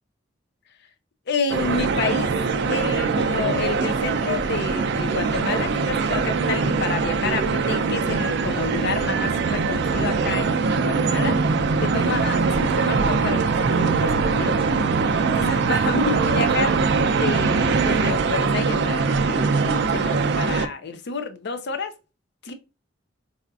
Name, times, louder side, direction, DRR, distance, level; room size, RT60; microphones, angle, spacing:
voice 1, 1.3-2.3 2.7-11.4 11.8-14.6 15.3-16.8 17.0-21.9 22.4-22.5, left 4 dB, 60° left, 0.6 m, -29 dB
sound 1, 1.5-20.7, right 4 dB, 60° right, 0.4 m, -22 dB
4.2 x 2.4 x 2.3 m
head